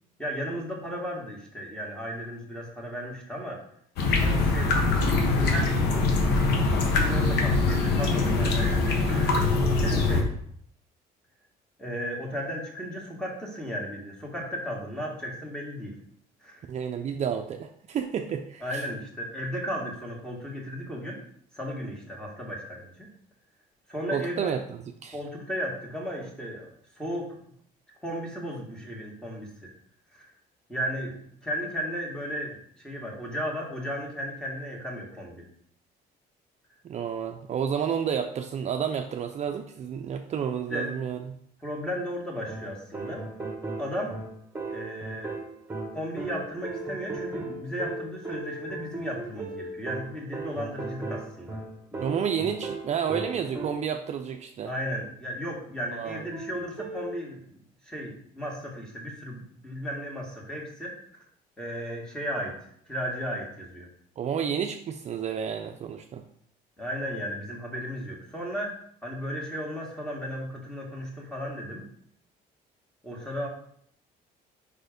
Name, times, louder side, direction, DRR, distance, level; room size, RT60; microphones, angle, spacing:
voice 1, 0.2-3.6 4.2-4.8 5.3-10.3 11.8-15.9 16.4-16.7 18.6-21.2 21.5-23.1 23.9-24.5 25.1-26.7 27.0-27.4 28.0-29.7 30.1-30.3 30.7-35.4 40.7-40.9 41.6-43.3 43.8-44.2 44.7-45.3 45.9-51.6 51.9-52.1 54.6-57.6 57.8-61.2 61.6-63.9 66.8-71.8 73.0-73.5, equal, 5° left, -2 dB, 1.9 m, -35 dB
sound 1, 4.0-10.2, left 3 dB, 80° left, 1.1 m, -23 dB
voice 2, 16.7-18.6 24.1-24.6 25.0-25.2 36.8-41.2 52.0-54.7 55.9-56.2 64.2-66.2, right 8 dB, 40° right, 5 dB, 0.5 m, -30 dB
sound 2, 42.5-54.1 56.3-57.2, right 3 dB, 15° right, 1.4 m, -37 dB
5.1 x 4.2 x 5.2 m, 0.65 s
cardioid pair, 110°, 17 cm